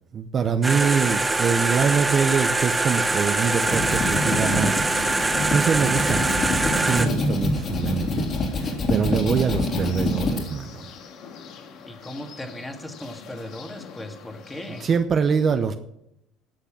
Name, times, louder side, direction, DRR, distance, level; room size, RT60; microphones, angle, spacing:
voice 1, 0.1-4.9 5.2-6.2 6.8-10.9 14.7-15.7, right 6 dB, 40° right, 8 dB, 0.8 m, -24 dB
sound 1, 0.6-7.1, right 2 dB, 15° right, 1.2 m, -23 dB
sound 2, 3.4-10.4, left 2 dB, 45° left, 3.4 m, -26 dB
sound 3, 6.8-15.0, left 5 dB, 65° left, 1.8 m, -42 dB
voice 2, 11.9-14.9, left 1 dB, 10° left, 5 dB, 1.7 m, -37 dB
12.0 x 6.7 x 7.3 m, 0.81 s
supercardioid pair, 90°, 0 cm